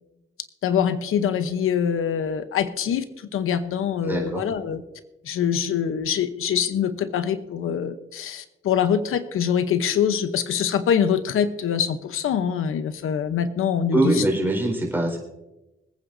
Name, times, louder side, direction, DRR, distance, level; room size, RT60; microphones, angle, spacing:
voice 1, 0.6-3.0 3.3-4.8 5.2-14.2, left 8 dB, 85° left, 10 dB, 0.9 m, -24 dB
voice 2, 4.0-4.4 13.9-15.2, right 2 dB, 10° right, -1 dB, 4.5 m, -22 dB
25.5 x 9.0 x 2.7 m, 0.97 s
cardioid pair, 115°, 21 cm